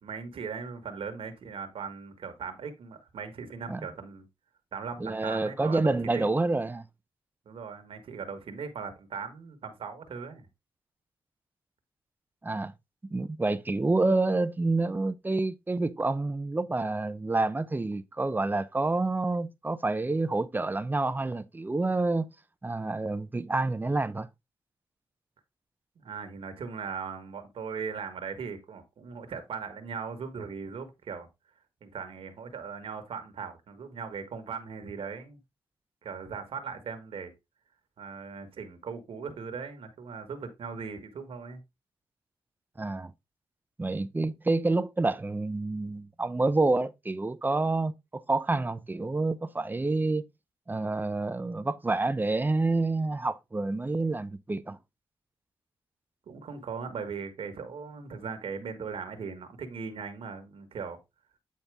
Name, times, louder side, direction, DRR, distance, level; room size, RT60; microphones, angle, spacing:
voice 1, 0.0-4.3 4.7-6.2 7.4-10.5 25.9-31.3 31.8-35.4 36.0-37.3 38.0-41.6 56.3-61.0, right 5 dB, 75° right, 1.5 m, -39 dB
voice 2, 5.0-6.8 12.4-12.7 13.1-22.3 22.6-24.3 42.8-43.1 43.8-50.2 50.7-54.8, right 2 dB, 20° right, 0.6 m, -28 dB
9.0 x 4.2 x 3.4 m
cardioid pair, 90°, 10 cm